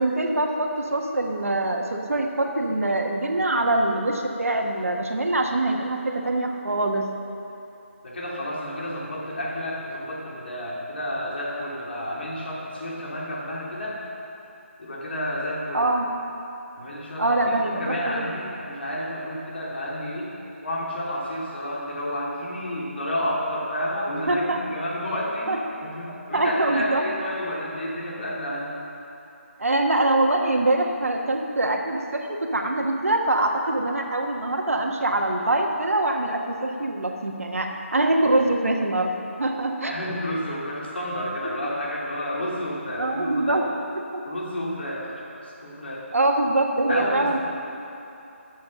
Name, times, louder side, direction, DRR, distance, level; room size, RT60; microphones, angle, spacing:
voice 1, 0.0-7.1 15.7-16.1 17.2-18.3 24.3-24.8 25.5-25.6 26.1-27.0 29.6-40.0 41.4-41.5 43.0-44.3 46.1-47.4, right 2 dB, 85° right, 2 dB, 1.4 m, -24 dB
voice 2, 8.0-14.0 14.8-15.9 16.8-20.3 20.6-28.7 39.9-43.7 44.3-46.1 46.9-47.4, equal, 50° left, -5 dB, 2.9 m, -30 dB
12.5 x 7.4 x 6.5 m, 2.9 s
figure-of-eight pair, 170°, 7 cm